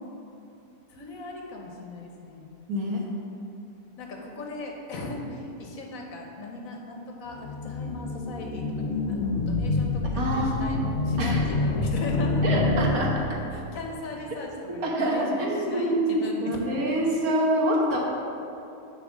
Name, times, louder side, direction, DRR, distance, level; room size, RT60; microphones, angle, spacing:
voice 1, 0.9-2.5 4.0-10.8 11.0-12.6 13.5-16.9, left 2 dB, 70° left, 0 dB, 1.4 m, -38 dB
voice 2, 2.7-3.0 10.1-10.8 11.2-11.4 12.4-13.2 14.8-18.0, right 1 dB, 80° right, -2 dB, 1.6 m, -26 dB
sound 1, 7.3-13.6, left 3 dB, 90° left, 0.4 m, -27 dB
7.0 x 4.4 x 6.2 m, 2.8 s
omnidirectional pair, 1.5 m